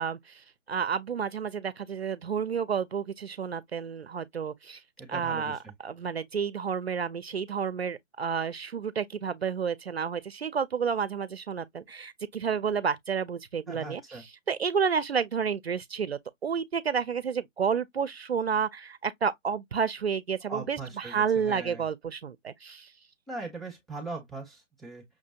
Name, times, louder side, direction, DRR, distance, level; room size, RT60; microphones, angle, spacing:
voice 1, 0.0-4.8 5.1-22.9, right 6 dB, 55° right, 0.5 m, -30 dB
voice 2, 5.0-5.7 13.7-14.2 20.5-21.8 23.3-25.0, right 3 dB, ahead, 0.4 m, -40 dB
5.8 x 2.4 x 2.8 m
hypercardioid pair, 165°, 38 cm